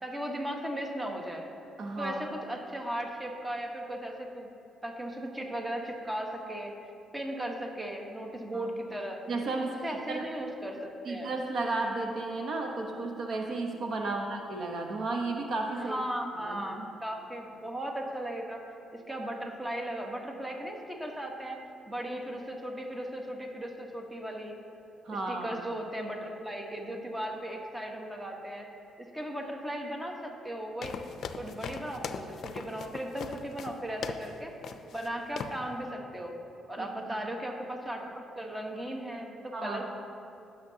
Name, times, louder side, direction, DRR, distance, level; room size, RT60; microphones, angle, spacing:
voice 1, 0.0-1.5 2.0-4.5 4.8-6.7 7.1-9.2 9.6-11.3 14.0-14.2 15.7-18.7 18.9-21.6 21.9-24.5 25.1-28.7 29.1-30.9 31.4-34.5 34.9-36.4 36.7-39.8, right 1 dB, 15° right, 1 dB, 1.1 m, -37 dB
voice 2, 1.8-2.1 8.5-8.7 9.3-10.3 11.0-16.0 16.4-16.9 25.0-25.6 36.8-37.2 39.5-39.8, right 3 dB, 60° right, 2 dB, 0.9 m, -33 dB
sound 1, 30.8-34.3 34.6-35.1 35.4-35.6, left 6 dB, 65° left, 0.4 m, -40 dB
15.5 x 6.6 x 2.8 m, 2.7 s
cardioid pair, 90°, 0 cm